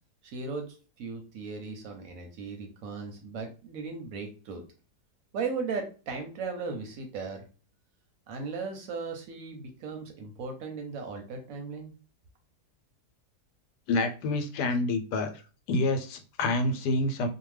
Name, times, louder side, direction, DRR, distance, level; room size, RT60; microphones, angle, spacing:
voice 1, 0.2-0.6 1.0-4.6 5.3-7.4 8.3-11.9, right 4 dB, 70° right, 4 dB, 0.9 m, -37 dB
voice 2, 13.9-15.4 15.7-17.3, left 2 dB, 80° left, 6 dB, 1.1 m, -27 dB
2.7 x 2.2 x 3.1 m, 0.36 s
omnidirectional pair, 1.8 m